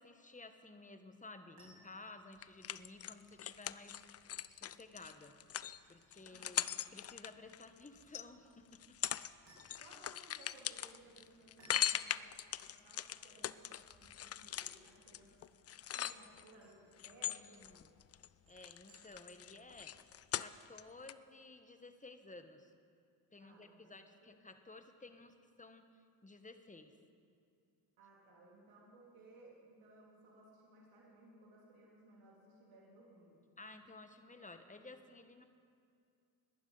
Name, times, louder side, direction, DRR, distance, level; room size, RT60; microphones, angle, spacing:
voice 1, 0.0-3.9 4.5-5.4 5.9-6.6 6.9-8.8 17.2-17.9 18.5-19.9 20.3-22.7 23.3-26.9 33.6-35.4, left 2 dB, 15° left, 8 dB, 1.3 m, -55 dB
sound 1, 1.6-19.5, right 1 dB, 50° right, 4.2 m, -70 dB
sound 2, 2.4-8.2 8.7-9.3 9.6-16.5 17.0-18.3 18.6-20.8 21.1-21.2, left 10 dB, 35° left, 0.4 m, -41 dB
voice 2, 6.2-6.7 9.8-12.3 12.6-15.4 15.9-17.6 23.4-24.0 28.0-33.4, right 2 dB, 70° right, -4 dB, 3.6 m, -61 dB
20.5 x 11.5 x 4.1 m, 2.4 s
supercardioid pair, 60°, 50 cm